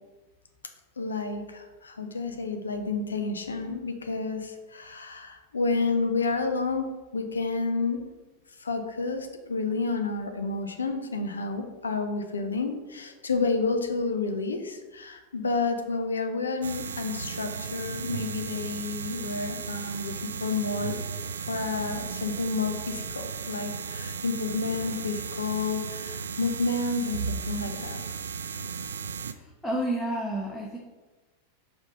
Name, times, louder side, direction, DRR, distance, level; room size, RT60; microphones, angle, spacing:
voice 1, 1.0-8.1 8.6-21.0 21.5-28.0, left 3 dB, 75° left, 6 dB, 0.7 m, -30 dB
sound 1, 16.6-29.3, right 6 dB, 65° right, 0.3 m, -35 dB
voice 2, 29.3-30.8, right 1 dB, 5° left, -3 dB, 0.9 m, -30 dB
4.8 x 3.7 x 5.4 m, 1.2 s
figure-of-eight pair, 90°, 0 cm